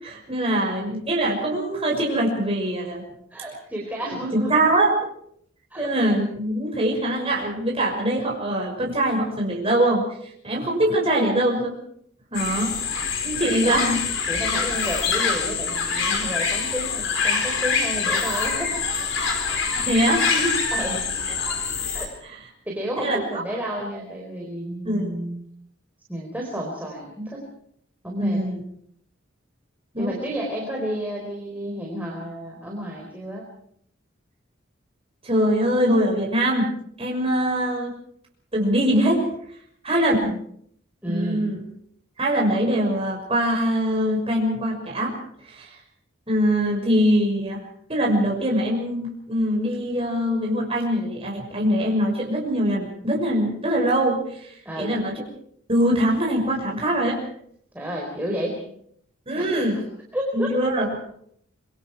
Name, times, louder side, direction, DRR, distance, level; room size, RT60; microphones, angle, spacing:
voice 1, 0.0-3.0 4.3-4.9 5.8-10.0 10.4-11.8 12.3-12.8 13.2-14.0 19.7-20.5 21.3-21.4 22.2-22.4 23.0-23.4 24.8-25.1 28.2-28.6 29.9-30.1 35.2-36.7 37.0-37.9 38.5-39.2 39.8-40.4 41.0-41.6 42.2-45.1 45.5-45.8 46.3-47.6 47.9-55.1 55.7-57.2 59.3-59.8 60.3-60.9, right 1 dB, 30° right, -1 dB, 6.1 m, -23 dB
voice 2, 3.3-4.6 5.7-5.9 13.5-13.7 14.3-18.8 20.7-21.1 21.9-22.1 22.7-25.5 26.1-27.5 28.0-28.4 30.0-33.4 41.0-41.4 54.6-55.0 57.7-58.6 59.3-59.6 60.1-60.6, equal, 10° right, -1 dB, 4.3 m, -31 dB
sound 1, 12.3-22.1, left 5 dB, 70° left, 4.5 m, -25 dB
26.5 x 24.0 x 4.8 m, 0.68 s
head